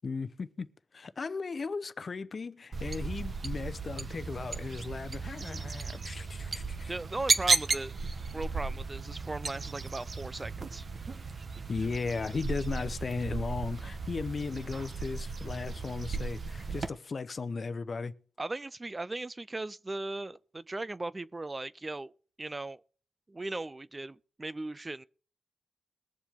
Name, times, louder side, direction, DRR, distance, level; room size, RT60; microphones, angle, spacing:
voice 1, 0.0-0.7 0.9-6.9 11.7-18.1, left 4 dB, 40° left, 0.8 m, -36 dB
sound 1, 2.7-16.9, right 4 dB, 40° right, 1.2 m, -34 dB
voice 2, 6.9-7.9 8.3-10.9 18.4-22.1 22.4-22.8 23.3-25.0, right 2 dB, 20° right, 0.4 m, -38 dB
21.5 x 7.2 x 3.6 m
cardioid pair, 95°, 0 cm